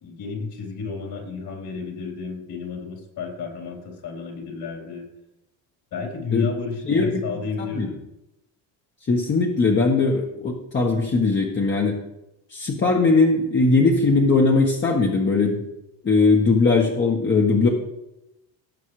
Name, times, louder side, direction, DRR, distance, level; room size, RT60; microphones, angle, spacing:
voice 1, 0.0-5.1 5.9-8.0, left 5 dB, 55° left, 0 dB, 3.9 m, -32 dB
voice 2, 9.1-11.9 12.5-15.6 16.0-17.7, left 3 dB, 25° left, -1 dB, 1.4 m, -19 dB
18.5 x 7.6 x 3.3 m, 0.93 s
cardioid pair, 130°, 42 cm